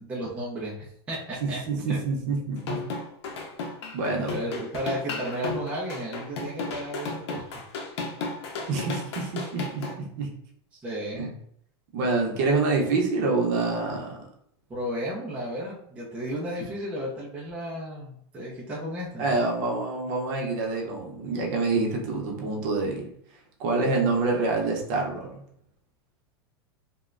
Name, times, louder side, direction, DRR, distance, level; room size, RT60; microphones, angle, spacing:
voice 1, 0.0-2.0 4.1-7.4 10.8-11.3 14.7-19.3, equal, 10° right, -6 dB, 0.4 m, -33 dB
voice 2, 1.4-2.8 3.9-4.3 8.7-10.3 11.2-11.3 11.9-14.2 19.2-23.1 23.6-25.4, right 3 dB, 50° right, 0 dB, 0.7 m, -27 dB
sound 1, 2.6-9.9, left 3 dB, 85° left, 0.5 m, -34 dB
3.0 x 2.1 x 2.4 m, 0.68 s
supercardioid pair, 155°, 14 cm